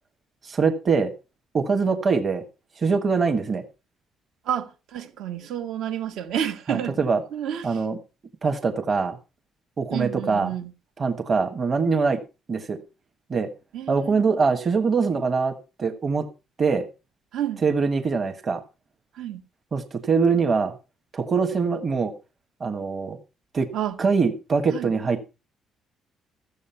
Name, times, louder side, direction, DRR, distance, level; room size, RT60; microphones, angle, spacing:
voice 1, 0.4-1.1 1.5-2.4 2.8-3.6 6.7-7.2 7.6-8.0 8.4-9.2 9.8-10.5 11.0-12.2 12.5-12.8 13.3-13.5 13.9-16.3 16.6-16.8 17.6-18.6 19.7-20.7 21.1-22.1 22.6-23.2 23.5-23.7 24.0-25.3, right 5 dB, 25° right, 1.3 m, -23 dB
voice 2, 4.5-7.1 7.3-7.8 9.9-10.7 13.7-14.2 17.3-17.6 19.1-19.4 23.7-24.0 24.7-24.9, right 10 dB, 70° right, 1.7 m, -30 dB
14.5 x 7.6 x 5.6 m
cardioid pair, 175°, 0 cm